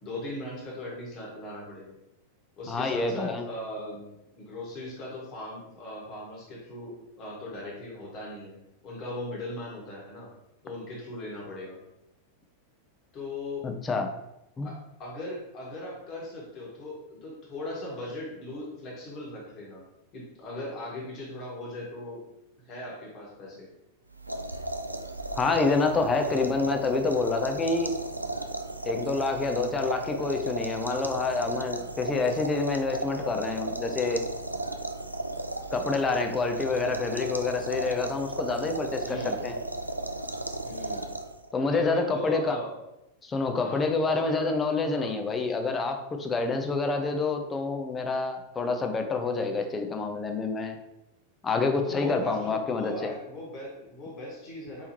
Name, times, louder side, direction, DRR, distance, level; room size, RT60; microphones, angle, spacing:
voice 1, 0.0-1.9 2.6-4.1 4.3-8.6 8.8-10.3 10.6-11.8 13.1-13.6 14.6-19.8 20.1-22.2 22.6-23.7 39.0-39.4 40.6-41.0 41.7-42.7 43.6-44.6 44.9-45.2 51.8-54.9, left 1 dB, 35° left, -3 dB, 1.6 m, -39 dB
voice 2, 2.7-3.4 13.6-14.1 14.6-14.7 25.4-27.9 28.8-34.2 35.7-39.6 41.5-42.6 43.2-50.8 51.4-53.1, left 3 dB, 20° left, 5 dB, 0.6 m, -27 dB
sound 1, 24.1-41.5, right 1 dB, 85° right, 0.3 m, -35 dB
4.5 x 3.4 x 2.9 m, 0.88 s
figure-of-eight pair, 90°, 0 cm